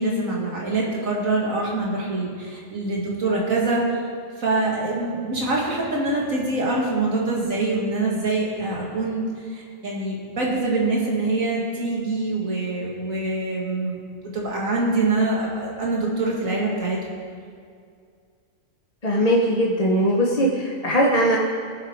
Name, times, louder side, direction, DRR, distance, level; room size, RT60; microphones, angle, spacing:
voice 1, 0.0-4.0 4.4-17.0, right 2 dB, 75° right, -3 dB, 2.6 m, -24 dB
voice 2, 19.0-21.4, equal, 30° left, -3 dB, 1.1 m, -20 dB
19.5 x 7.5 x 4.7 m, 2.2 s
omnidirectional pair, 1.4 m